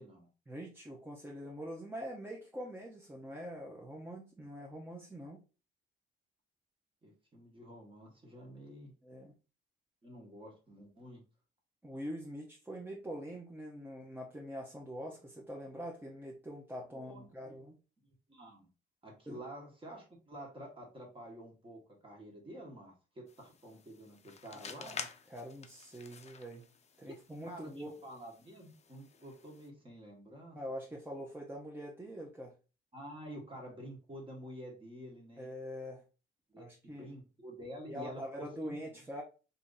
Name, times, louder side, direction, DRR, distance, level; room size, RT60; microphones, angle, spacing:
voice 1, 0.5-5.4 9.0-9.3 11.8-17.8 19.3-19.4 24.7-26.6 27.0-27.9 30.5-32.5 35.4-36.0 36.6-37.1 37.9-39.2, equal, 10° right, -2 dB, 0.7 m, -44 dB
voice 2, 7.0-8.9 10.0-11.2 16.9-17.6 18.3-18.7 19.0-25.0 27.5-30.6 32.9-35.5 36.5-39.0, equal, 25° right, -1 dB, 1.2 m, -49 dB
sound 1, 23.3-29.7, left 6 dB, 35° left, 0.5 m, -50 dB
2.8 x 2.7 x 3.7 m, 0.33 s
cardioid pair, 90°, 20 cm